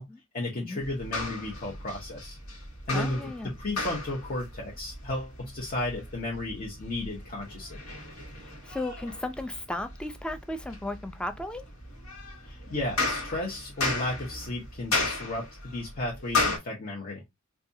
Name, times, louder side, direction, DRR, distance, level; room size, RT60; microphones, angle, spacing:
voice 1, 0.3-2.4 2.9-7.8 12.4-17.2, left 1 dB, 40° left, 0.8 m, -34 dB
sound 1, 0.8-16.6, left 3 dB, 80° left, 1.2 m, -35 dB
voice 2, 2.9-3.5 8.6-11.7, left 1 dB, 5° left, 0.3 m, -35 dB
4.1 x 2.3 x 2.6 m
head